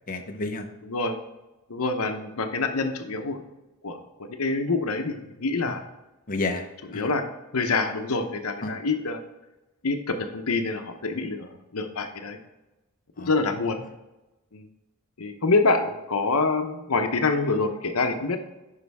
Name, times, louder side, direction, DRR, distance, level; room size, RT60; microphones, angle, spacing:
voice 1, 0.1-0.7 5.7-5.8 6.3-7.1 8.6-8.8 11.1-11.3 13.2-13.3, left 2 dB, 40° left, 3 dB, 0.8 m, -31 dB
voice 2, 0.9-1.2 1.7-3.4 3.8-5.8 6.9-7.2 7.5-9.2 9.8-12.4 13.2-13.8 14.5-14.7 15.2-18.4, left 3 dB, 90° left, 6 dB, 0.9 m, -26 dB
9.6 x 5.6 x 3.5 m, 1.0 s
head